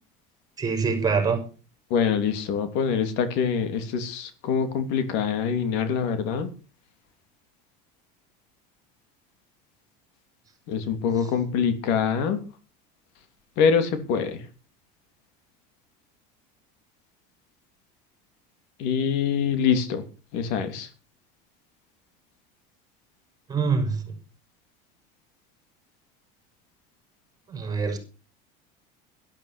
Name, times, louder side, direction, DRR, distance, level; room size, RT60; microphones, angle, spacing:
voice 1, 0.6-1.4 11.2-11.3 23.5-24.1 27.5-28.0, right 5 dB, 20° right, 6 dB, 5.6 m, -25 dB
voice 2, 1.9-6.5 10.7-12.4 13.6-14.4 18.8-20.0 20.3-20.9, left 7 dB, 65° left, 10 dB, 3.0 m, -24 dB
12.0 x 12.0 x 6.8 m, 0.35 s
cardioid pair, 150°, 20 cm